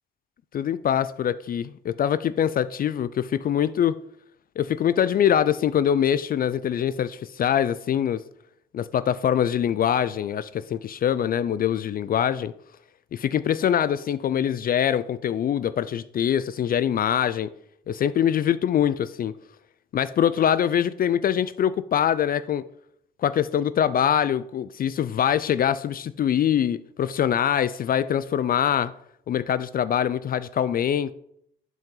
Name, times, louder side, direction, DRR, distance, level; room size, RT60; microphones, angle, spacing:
voice 1, 0.5-4.0 4.6-8.2 8.7-12.5 13.1-17.5 17.9-19.3 19.9-22.6 23.2-28.9 29.3-31.1, left 9 dB, 45° left, 0.4 m, -23 dB
10.5 x 4.5 x 3.9 m
cardioid pair, 90°, 20 cm